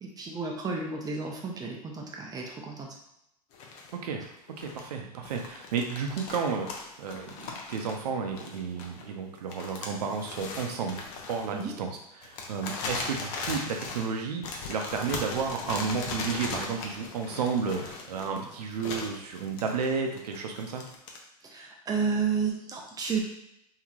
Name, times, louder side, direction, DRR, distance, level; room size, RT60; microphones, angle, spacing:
voice 1, 0.0-3.0 11.5-11.7 21.4-23.2, right 5 dB, 20° right, 0 dB, 0.6 m, -32 dB
sound 1, 3.5-3.9 4.2-4.9 5.2-9.2 9.5-21.2, left 4 dB, 55° left, 0.7 m, -39 dB
voice 2, 3.9-6.7 7.0-11.0 11.3-11.9 12.2-20.8, right 5 dB, 75° right, 3 dB, 0.6 m, -32 dB
2.9 x 2.8 x 2.4 m, 0.81 s
hypercardioid pair, 105°, 20 cm